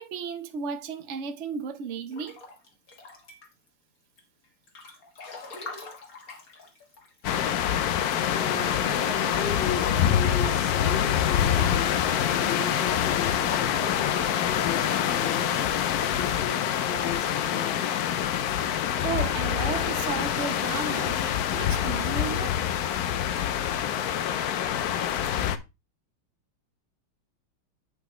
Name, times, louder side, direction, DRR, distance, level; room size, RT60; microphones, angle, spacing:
voice 1, 0.0-2.4 19.0-21.2 21.5-22.6, right 6 dB, 75° right, 0.6 m, -34 dB
Breathing / Bathtub (filling or washing) / Splash splatter, 2.1-3.7 4.2-7.4 7.6-7.7 8.0-12.2 12.7-13.6, left 3 dB, 45° left, 1.8 m, -43 dB
sound 1, 7.2-25.6, left 10 dB, 85° left, 0.8 m, -26 dB
voice 2, 8.3-15.5 16.0-16.6 16.8-17.8, left 5 dB, 70° left, 4.2 m, -36 dB
7.9 x 7.0 x 3.0 m
omnidirectional pair, 2.3 m